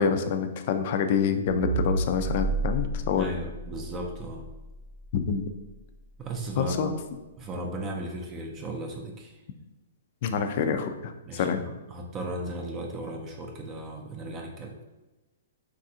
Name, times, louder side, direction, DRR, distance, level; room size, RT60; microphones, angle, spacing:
voice 1, 0.0-3.2 5.1-5.4 6.6-6.9 10.2-11.6, left 6 dB, 50° left, 7 dB, 0.3 m, -26 dB
sound 1, 1.5-6.0, right 2 dB, 60° right, 0.7 m, -32 dB
voice 2, 3.2-4.5 6.2-7.0 7.4-9.4 11.3-14.8, right 1 dB, 25° right, 1 dB, 0.4 m, -36 dB
3.3 x 2.4 x 2.7 m, 1.1 s
hypercardioid pair, 140°, 0 cm